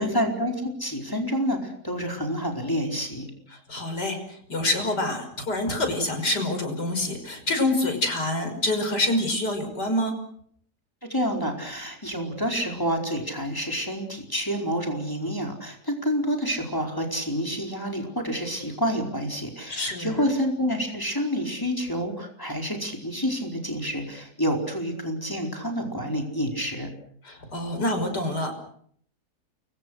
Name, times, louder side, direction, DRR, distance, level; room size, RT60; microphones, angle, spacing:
voice 1, 0.0-3.3 11.0-26.9, equal, 10° left, 2 dB, 4.7 m, -28 dB
voice 2, 3.5-10.1 19.7-20.2 27.2-28.6, left 1 dB, 75° left, 6 dB, 6.3 m, -26 dB
29.5 x 23.5 x 6.5 m, 0.64 s
omnidirectional pair, 1.8 m